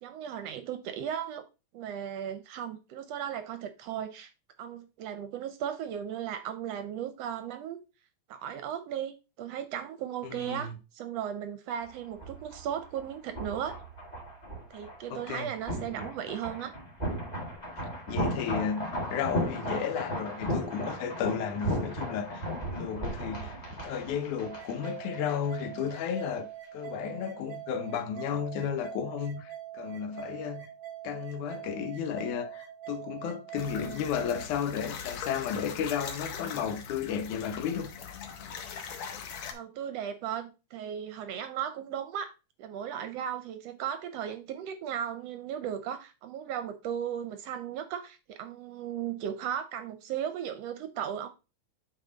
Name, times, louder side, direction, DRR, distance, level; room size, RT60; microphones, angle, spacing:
voice 1, 0.0-1.4 1.7-4.3 4.6-7.8 8.3-13.8 14.7-16.7 39.5-42.3 42.6-51.3, right 9 dB, 75° right, 1.6 m, -36 dB
voice 2, 10.2-10.8 15.1-15.5 17.8-30.7 31.0-37.9, left 7 dB, 90° left, 2.3 m, -33 dB
sound 1, 11.8-25.6 25.9-26.0, equal, 15° left, 1.5 m, -36 dB
sound 2, 24.4-34.4, right 12 dB, 50° right, 1.4 m, -44 dB
sound 3, 33.6-39.5, left 6 dB, 70° left, 2.1 m, -41 dB
8.2 x 3.9 x 3.9 m
omnidirectional pair, 3.3 m